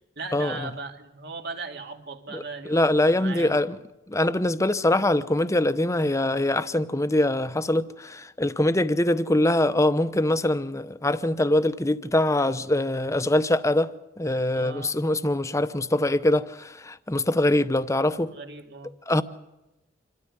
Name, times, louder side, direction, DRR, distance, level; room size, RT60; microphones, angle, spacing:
voice 1, 0.2-3.6 14.5-15.0 18.3-18.9, right 3 dB, 60° right, 2.5 m, -38 dB
voice 2, 2.3-3.8 4.1-13.9 14.2-18.3 19.1-19.2, left 1 dB, 15° left, 0.8 m, -23 dB
27.0 x 13.5 x 9.7 m
head